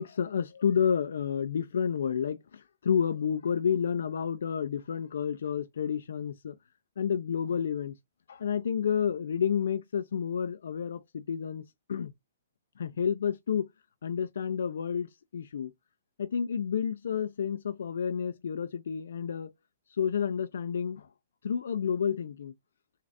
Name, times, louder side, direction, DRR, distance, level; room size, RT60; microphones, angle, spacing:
voice 1, 0.0-6.6 7.0-8.0 8.3-11.6 11.9-12.1 12.8-13.7 14.0-15.7 16.2-19.5 19.9-21.1 21.4-22.5, left 7 dB, 75° left, 0.5 m, -30 dB
6.4 x 2.4 x 2.5 m
hypercardioid pair, 140°, 0 cm